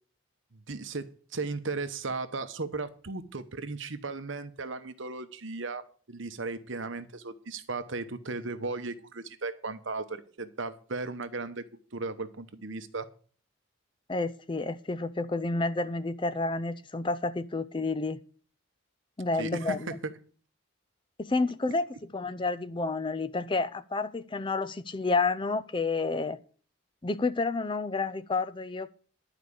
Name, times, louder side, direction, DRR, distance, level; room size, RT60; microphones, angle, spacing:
voice 1, 0.5-11.6 11.9-13.1 19.4-20.1, right 3 dB, 65° right, 1.0 m, -36 dB
voice 2, 14.1-18.2 19.2-19.9 21.2-21.9 22.1-26.4 27.0-28.9, left 3 dB, 25° left, 0.4 m, -30 dB
11.5 x 4.9 x 8.4 m
head